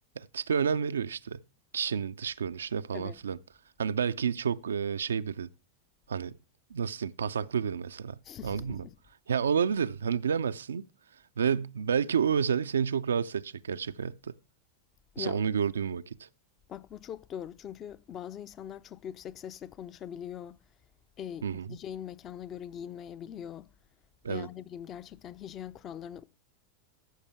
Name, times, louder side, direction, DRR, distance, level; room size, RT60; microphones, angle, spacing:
voice 1, 0.2-1.4 1.7-3.4 3.8-5.5 6.1-6.4 6.7-8.8 9.3-10.8 11.4-14.3 15.2-16.3 21.4-21.7 24.2-24.5, right 7 dB, 70° right, 0.4 m, -30 dB
voice 2, 8.2-9.0 15.1-15.4 16.7-20.6 21.2-23.7 24.3-26.2, left 9 dB, 30° left, 0.5 m, -42 dB
14.0 x 6.6 x 3.4 m
figure-of-eight pair, 90°, 0 cm